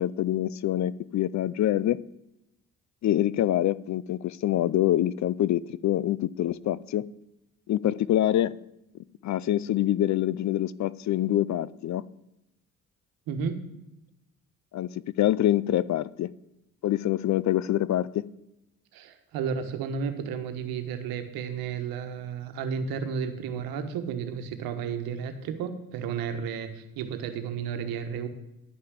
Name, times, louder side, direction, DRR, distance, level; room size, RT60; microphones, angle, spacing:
voice 1, 0.0-2.0 3.0-7.1 7.7-8.5 9.2-12.0 14.7-14.9 15.2-16.3 16.8-18.2, left 12 dB, 55° left, 0.5 m, -25 dB
voice 2, 13.3-13.6 18.9-28.3, right 6 dB, 85° right, 1.3 m, -32 dB
11.0 x 5.7 x 8.3 m
cardioid pair, 80°, 34 cm